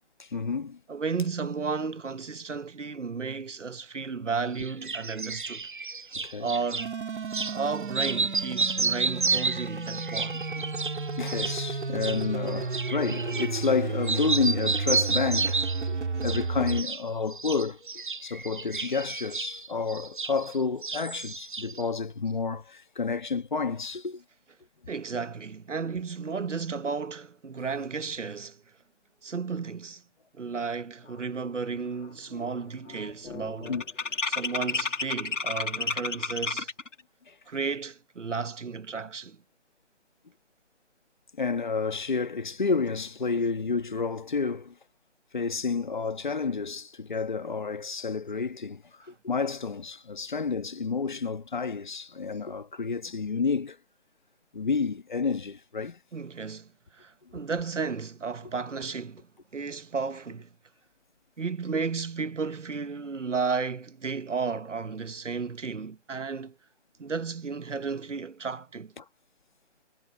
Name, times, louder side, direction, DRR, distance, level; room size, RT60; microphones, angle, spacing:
voice 1, 0.2-0.8 4.6-4.7 6.2-6.5 11.2-15.6 15.9-24.2 33.7-33.8 37.3-37.4 41.4-44.7 45.3-48.8 49.2-53.8 54.5-56.0 69.0-69.1, left 5 dB, 40° left, 1.7 m, -30 dB
voice 2, 0.9-5.7 6.4-6.9 7.4-10.3 24.9-28.6 29.2-30.0 30.3-33.7 34.3-36.7 37.5-39.4 56.1-56.7 56.9-59.3 59.5-60.5 61.4-66.5 67.0-68.9, right 5 dB, 90° right, 1.5 m, -33 dB
sound 1, 4.6-6.9 7.3-7.6 7.9-13.8 14.0-15.9 16.2-17.0 17.3-20.6 20.8-21.8, right 4 dB, 45° right, 0.5 m, -31 dB
sound 2, 6.8-16.8, right 4 dB, 70° right, 2.7 m, -33 dB
sound 3, 31.7-32.1 32.3-36.9, left 4 dB, 85° left, 2.3 m, -32 dB
hypercardioid pair, 175°, 36 cm